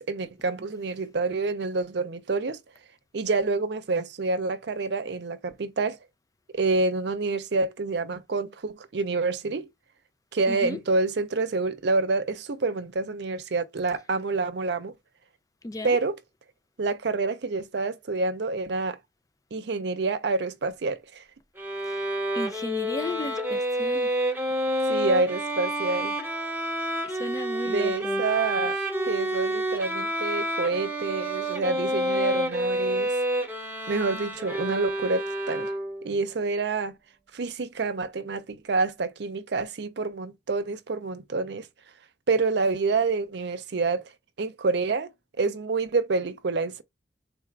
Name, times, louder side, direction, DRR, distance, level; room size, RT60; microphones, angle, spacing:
voice 1, 0.0-2.6 3.1-6.0 6.5-9.7 10.3-14.9 15.8-16.2 16.8-19.0 19.5-21.2 24.9-26.2 27.6-28.8 29.1-33.1 33.9-35.7 36.0-36.9 37.3-41.7 42.3-44.0 44.4-45.1 45.4-46.8, right 3 dB, 65° right, 0.6 m, -27 dB
voice 2, 10.5-10.8 15.6-16.0 21.8-22.1 22.3-24.1 27.1-28.2, left 2 dB, 20° left, 0.4 m, -34 dB
Bowed string instrument, 21.6-36.1, right 1 dB, 10° right, 1.1 m, -29 dB
3.9 x 2.4 x 4.4 m
head